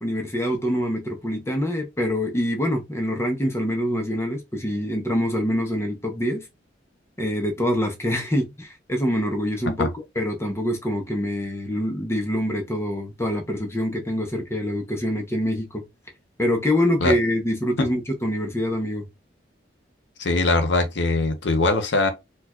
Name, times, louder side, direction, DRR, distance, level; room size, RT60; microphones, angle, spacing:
voice 1, 0.0-6.5 7.2-15.8 16.4-19.1, equal, 15° left, 0.7 m, -25 dB
voice 2, 20.2-22.1, left 2 dB, 75° left, 0.7 m, -21 dB
4.5 x 2.3 x 2.3 m
head